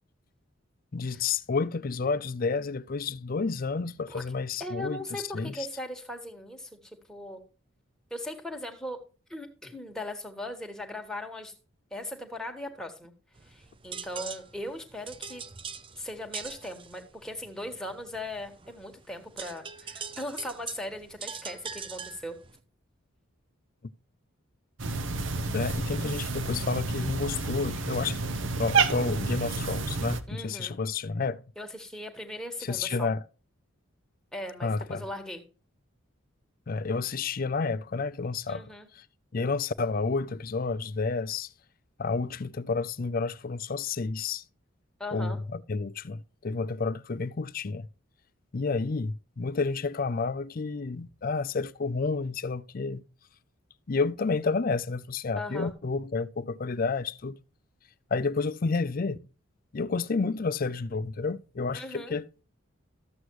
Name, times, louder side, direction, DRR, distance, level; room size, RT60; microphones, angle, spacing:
voice 1, 0.9-5.7 25.5-28.3 28.6-31.4 32.6-33.2 34.6-35.1 36.7-39.0 39.3-41.5 42.0-44.4 45.1-47.9 48.5-53.0 53.9-57.4 58.1-59.2 59.7-62.5, left 4 dB, 45° left, 0.4 m, -30 dB
voice 2, 4.6-7.4 8.1-9.0 9.3-11.5 11.9-13.1 13.5-15.4 16.0-22.4 30.3-30.8 31.6-33.1 34.3-35.4 38.5-38.9 45.0-45.4 55.4-55.7 61.7-62.1, left 1 dB, 5° left, 1.5 m, -39 dB
sound 1, 13.3-22.6, right 6 dB, 25° right, 0.6 m, -43 dB
Cat, 24.8-30.2, right 4 dB, 65° right, 0.9 m, -29 dB
13.0 x 7.9 x 3.1 m
head